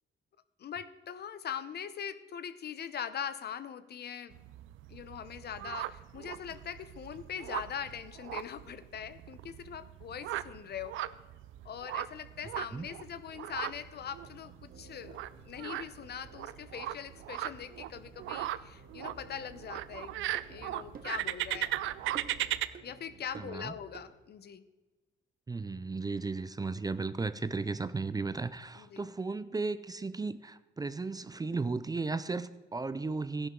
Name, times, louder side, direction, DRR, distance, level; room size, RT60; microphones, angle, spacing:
voice 1, 0.6-4.4 4.9-11.0 11.6-15.2 15.5-21.7 22.8-24.6 28.8-29.0, left 8 dB, 55° left, 13 dB, 0.8 m, -42 dB
sound 1, 4.3-22.7, right 14 dB, 85° right, 0.5 m, -38 dB
sound 2, 13.3-24.1, right 2 dB, 65° right, 2.5 m, -57 dB
sound 3, 19.7-19.9 20.3-20.5 20.9-21.2 21.5-21.7 22.1-22.5 22.7-22.9 23.3-23.6 23.9-24.1, right 6 dB, 45° right, 1.3 m, -48 dB
voice 2, 23.4-23.7 25.5-33.5, right 3 dB, 20° right, 14 dB, 0.5 m, -35 dB
15.0 x 11.0 x 3.8 m, 1.2 s
cardioid pair, 90°, 20 cm